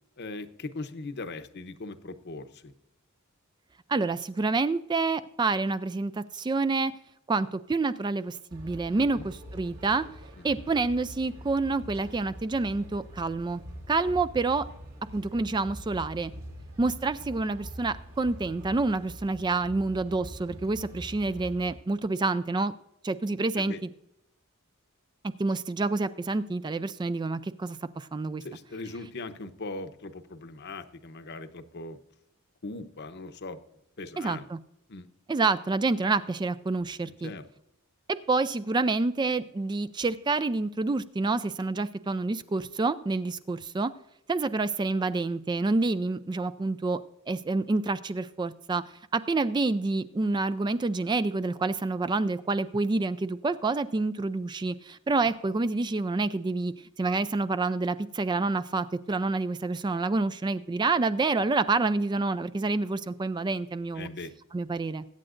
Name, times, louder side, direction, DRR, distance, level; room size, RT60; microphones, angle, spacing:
voice 1, 0.2-2.7 9.0-9.2 10.4-10.6 23.6-23.8 28.4-32.0 32.6-33.6 34.0-34.5 34.9-35.1 37.0-37.4 63.9-64.3, left 3 dB, 50° left, 10 dB, 0.8 m, -40 dB
voice 2, 3.9-6.9 7.3-10.0 10.4-13.6 13.9-14.7 15.1-16.3 16.8-22.7 23.0-23.9 25.2-28.4 34.2-34.6 35.3-37.3 38.1-43.9 44.3-47.0 47.3-48.8 49.1-64.1 64.5-65.0, right 3 dB, 20° right, 13 dB, 0.3 m, -28 dB
sound 1, 8.5-21.7, equal, 80° right, 2.9 m, -44 dB
22.0 x 8.8 x 2.5 m, 0.84 s
head